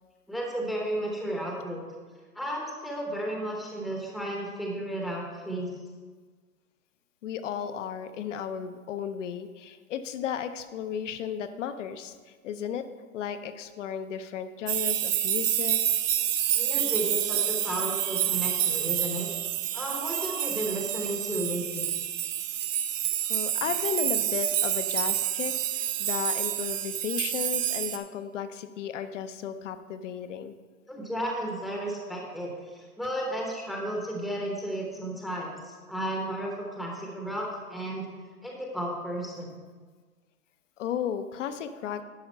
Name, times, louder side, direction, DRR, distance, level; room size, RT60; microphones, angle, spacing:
voice 1, 0.3-1.8 2.3-5.7 16.5-19.3 19.7-21.9 30.9-38.1 38.4-39.5, right 1 dB, ahead, -1 dB, 0.9 m, -33 dB
voice 2, 7.2-12.9 13.1-15.8 23.3-30.5 40.8-42.0, left 8 dB, 55° left, 10 dB, 0.8 m, -34 dB
sound 1, 14.7-28.0, right 11 dB, 60° right, 0.9 m, -28 dB
11.0 x 4.9 x 5.5 m, 1.5 s
hypercardioid pair, 140°, 43 cm